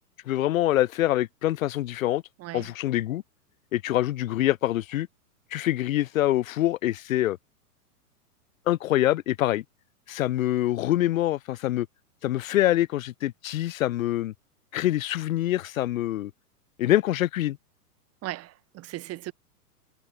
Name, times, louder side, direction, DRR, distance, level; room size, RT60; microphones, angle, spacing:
voice 1, 0.3-2.2 2.5-3.2 3.7-5.1 5.5-7.4 8.7-9.6 10.1-11.9 12.2-14.3 14.7-16.3 16.8-17.6, left 14 dB, 55° left, 4.4 m, -25 dB
voice 2, 2.4-2.7 18.2-19.3, right 16 dB, 30° right, 4.6 m, -37 dB
hypercardioid pair, 115°, 47 cm